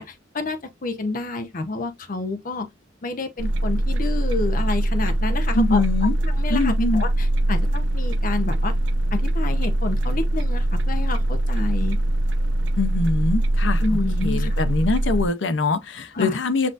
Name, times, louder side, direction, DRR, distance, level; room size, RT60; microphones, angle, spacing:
voice 1, 0.0-2.7 3.0-5.8 6.2-8.7 9.1-12.0 13.8-14.5 16.1-16.4, left 3 dB, 45° left, 0.6 m, -29 dB
sound 1, 3.4-15.3, right 1 dB, 70° right, 0.4 m, -22 dB
voice 2, 5.5-6.1 6.5-7.0 12.8-16.7, left 3 dB, 80° left, 0.7 m, -23 dB
7.4 x 2.6 x 2.4 m
head